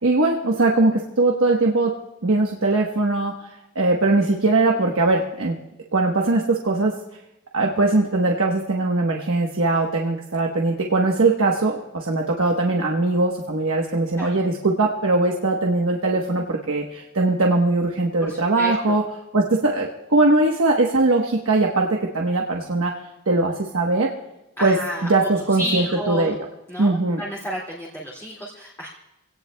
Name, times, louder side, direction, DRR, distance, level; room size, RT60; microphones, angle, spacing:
voice 1, 0.0-2.0 2.2-3.3 3.7-5.6 5.9-6.9 7.5-19.0 19.3-22.9 23.3-24.1 24.6-24.8 25.0-26.4 26.8-27.2, right 2 dB, 80° right, 0 dB, 1.2 m, -20 dB
voice 2, 18.2-19.0 24.6-26.3 26.7-28.9, equal, 10° left, -5 dB, 2.2 m, -31 dB
25.5 x 17.5 x 2.3 m, 0.89 s
head